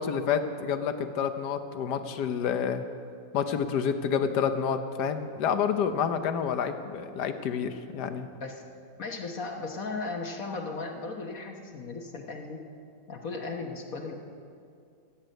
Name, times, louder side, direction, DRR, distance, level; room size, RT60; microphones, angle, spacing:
voice 1, 0.0-2.8 3.3-8.3, left 7 dB, 70° left, 9 dB, 1.4 m, -29 dB
voice 2, 9.0-12.6 13.1-14.2, left 3 dB, 55° left, 2 dB, 1.5 m, -36 dB
16.0 x 8.1 x 9.1 m, 2.4 s
omnidirectional pair, 1.9 m